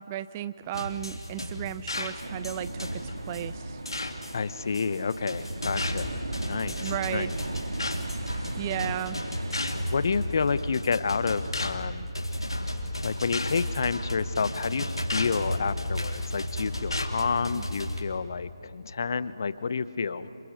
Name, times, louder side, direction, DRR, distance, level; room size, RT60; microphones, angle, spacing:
voice 1, 0.0-3.8 6.8-7.3 8.6-9.2 17.5-17.7, right 11 dB, 25° right, 15 dB, 0.5 m, -34 dB
sound 1, 0.7-18.0, left 1 dB, 90° left, 4.0 m, -34 dB
sound 2, 1.9-2.2 3.1-3.2 3.9-4.2 5.8-6.2 7.8-8.0 9.5-9.8 10.7-10.9 11.5-11.8 12.5-12.6 13.3-13.6 15.1-15.4 16.1-16.3 16.9-17.2, left 2 dB, 70° left, 2.5 m, -33 dB
sound 3, 2.2-11.2, right 2 dB, 75° right, 1.9 m, -37 dB
voice 2, 4.3-6.1 6.5-6.7 7.1-7.3 9.9-12.1 13.0-20.3, left 5 dB, 50° left, 15 dB, 0.9 m, -29 dB
28.0 x 27.0 x 6.3 m, 2.6 s
figure-of-eight pair, 150°, 3 cm